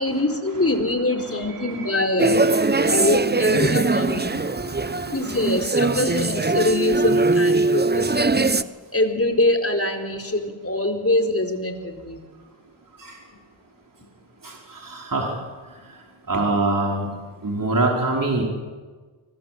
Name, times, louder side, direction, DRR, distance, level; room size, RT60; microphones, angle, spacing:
voice 1, 0.0-2.5 2.8-4.3 5.1-8.5 8.9-12.2, left 2 dB, 30° left, 4 dB, 4.2 m, -24 dB
voice 2, 1.1-2.0 2.4-3.0 3.4-3.6 4.0-5.5 5.8-6.0 13.0-13.1 14.4-15.3 16.3-17.1 17.4-18.4, right 2 dB, 40° right, -1 dB, 5.4 m, -27 dB
sound 1, 2.2-8.6, right 3 dB, 20° right, 1.0 m, -21 dB
24.0 x 21.5 x 7.9 m, 1.4 s
cardioid pair, 50°, 49 cm